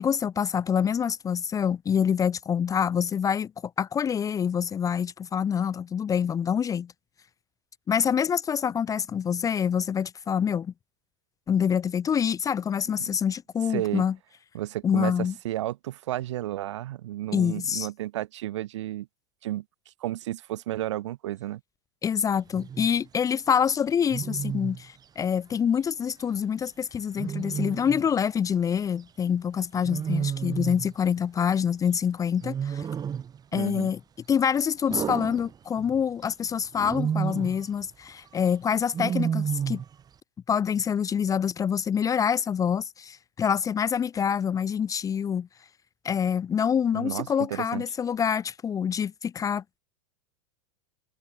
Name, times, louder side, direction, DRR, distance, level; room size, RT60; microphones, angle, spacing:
voice 1, 0.0-3.5 3.8-6.9 7.9-10.7 11.5-14.1 14.8-15.3 17.3-17.9 22.0-32.8 33.5-34.0 34.3-39.8 40.5-45.5 46.0-49.8, left 7 dB, 20° left, 0.6 m, -26 dB
voice 2, 13.7-14.1 14.5-19.1 19.4-19.6 20.0-21.6 33.5-33.9 46.9-47.8, right 14 dB, 75° right, 5.5 m, -32 dB
Wild animals, 22.5-22.9 24.1-24.8 27.2-28.1 29.8-30.9 32.4-33.4 34.9-36.0 36.8-37.6 38.9-39.9, right 8 dB, 25° right, 1.5 m, -30 dB
hypercardioid pair, 105°, 15 cm